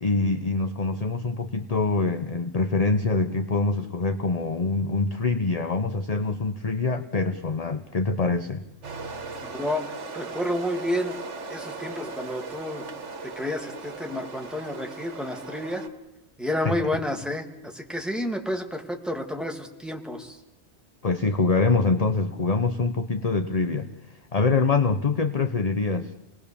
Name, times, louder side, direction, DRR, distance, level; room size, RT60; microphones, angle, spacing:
voice 1, 0.0-8.6 16.6-16.7 21.0-23.9 24.3-26.1, left 3 dB, 35° left, 8 dB, 0.9 m, -24 dB
sound 1, 8.8-15.9, right 3 dB, 90° right, 1.8 m, -38 dB
voice 2, 9.4-9.9 10.1-11.2 11.5-12.9 13.2-15.8 16.4-20.4, left 1 dB, ahead, 2 dB, 2.2 m, -30 dB
28.0 x 20.0 x 7.0 m, 0.91 s
omnidirectional pair, 1.2 m